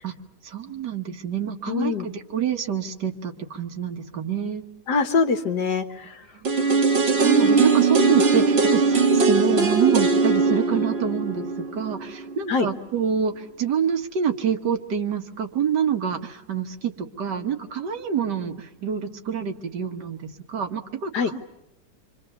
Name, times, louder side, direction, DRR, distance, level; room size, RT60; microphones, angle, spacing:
voice 1, 0.4-4.6 6.4-6.5 7.2-21.4, right 7 dB, 75° right, 6 dB, 1.9 m, -26 dB
voice 2, 1.7-2.1 4.9-6.1 12.5-12.7 21.1-21.3, left 5 dB, 70° left, 8 dB, 1.9 m, -23 dB
sound 1, 6.4-12.4 12.7-12.8, right 4 dB, 40° right, 1.4 m, -20 dB
27.0 x 24.5 x 6.9 m, 0.88 s
omnidirectional pair, 1.9 m